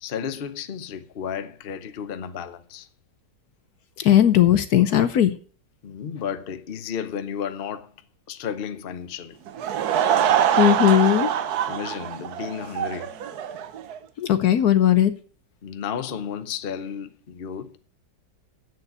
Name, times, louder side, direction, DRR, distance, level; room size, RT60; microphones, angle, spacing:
voice 1, 0.0-2.9 5.8-7.9 8.3-9.4 11.7-13.1 15.6-17.8, left 7 dB, 45° left, 0.8 m, -33 dB
voice 2, 4.0-5.3 10.6-11.3 14.2-15.1, left 11 dB, 65° left, 1.1 m, -17 dB
Laughter / Crowd, 9.5-14.0, right 9 dB, 65° right, 1.2 m, -24 dB
8.3 x 6.8 x 8.1 m
omnidirectional pair, 2.0 m